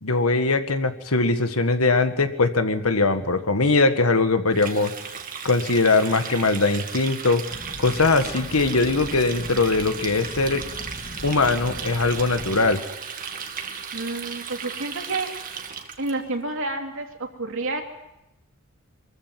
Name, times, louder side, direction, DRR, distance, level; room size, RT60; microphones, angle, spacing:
voice 1, 0.0-4.9 5.4-7.4 7.8-10.6 11.2-12.8, left 3 dB, 85° left, 9 dB, 1.7 m, -21 dB
Water tap faucet, 4.5-16.1, right 6 dB, 40° right, 2.0 m, -35 dB
Fire, 7.5-12.8, left 1 dB, 35° left, 2.0 m, -40 dB
voice 2, 13.9-15.3 16.0-17.8, right 2 dB, 65° right, 2 dB, 3.2 m, -29 dB
23.5 x 14.5 x 9.3 m, 0.91 s
head